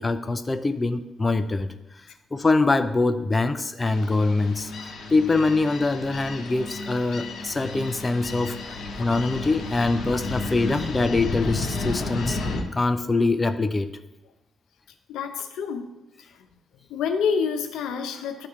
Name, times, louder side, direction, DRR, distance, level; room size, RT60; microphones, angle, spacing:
voice 1, 0.0-1.7 2.3-12.4 12.8-13.9, left 3 dB, 25° left, 9 dB, 0.4 m, -24 dB
sound 1, 3.8-12.6, left 3 dB, 65° left, 1.5 m, -32 dB
voice 2, 15.1-15.9 16.9-18.5, left 6 dB, 85° left, 6 dB, 0.8 m, -27 dB
12.5 x 4.3 x 3.1 m, 1.0 s
cardioid pair, 90°, 0 cm